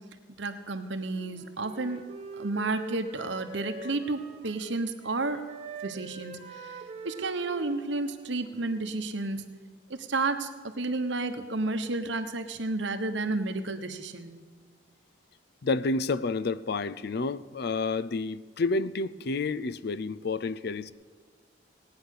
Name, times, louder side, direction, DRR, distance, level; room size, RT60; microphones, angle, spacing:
voice 1, 0.4-2.0 2.4-5.4 5.8-9.4 10.0-10.5 10.8-14.3, right 2 dB, 65° right, 1.1 m, -31 dB
Wind instrument woodwind instrument, 1.1-4.7 5.0-8.9, right 4 dB, 30° right, 1.3 m, -44 dB
voice 2, 15.6-20.9, left 3 dB, 55° left, 0.5 m, -30 dB
18.5 x 9.5 x 6.6 m
head